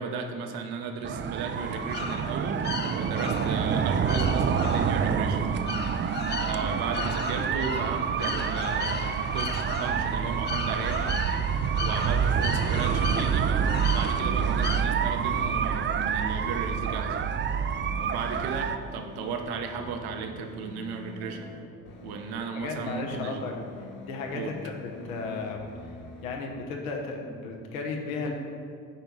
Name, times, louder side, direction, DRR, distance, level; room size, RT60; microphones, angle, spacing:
voice 1, 0.0-2.6 3.0-5.4 6.4-11.2 11.8-17.2 18.0-21.5 22.0-23.5 24.3-24.5, right 5 dB, 65° right, 5 dB, 1.0 m, -35 dB
sound 1, 1.0-18.8, right 7 dB, 30° right, 0.4 m, -27 dB
sound 2, 1.6-14.8, left 7 dB, 25° left, 0.4 m, -38 dB
sound 3, 14.4-26.4, left 3 dB, 50° left, 1.6 m, -45 dB
voice 2, 22.4-23.7 24.1-25.6 26.2-28.3, left 4 dB, 80° left, 1 dB, 1.2 m, -34 dB
9.7 x 4.6 x 5.4 m, 2.1 s
hypercardioid pair, 55°, 41 cm